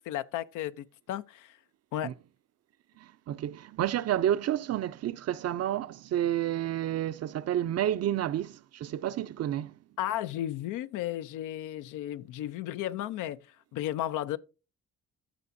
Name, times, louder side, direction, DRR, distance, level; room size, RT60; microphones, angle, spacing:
voice 1, 0.1-1.5 1.9-2.1 10.0-13.4 13.7-14.4, left 12 dB, 85° left, 0.6 m, -34 dB
voice 2, 3.0-9.7, right 11 dB, 55° right, 0.6 m, -30 dB
15.0 x 6.0 x 2.6 m
cardioid pair, 90°, 30 cm